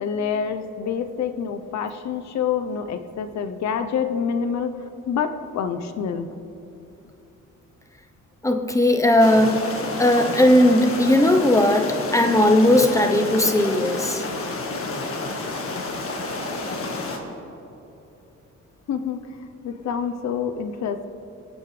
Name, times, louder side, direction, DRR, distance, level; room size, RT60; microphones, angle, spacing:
voice 1, 0.0-6.3 18.9-21.1, left 7 dB, 65° left, 9 dB, 0.9 m, -27 dB
voice 2, 8.4-9.6 10.0-14.2, left 1 dB, 10° left, 5 dB, 0.9 m, -17 dB
sound 1, 9.2-17.2, left 2 dB, 45° left, 1.7 m, -30 dB
20.5 x 8.5 x 3.4 m, 2.9 s
cardioid pair, 90°, 30 cm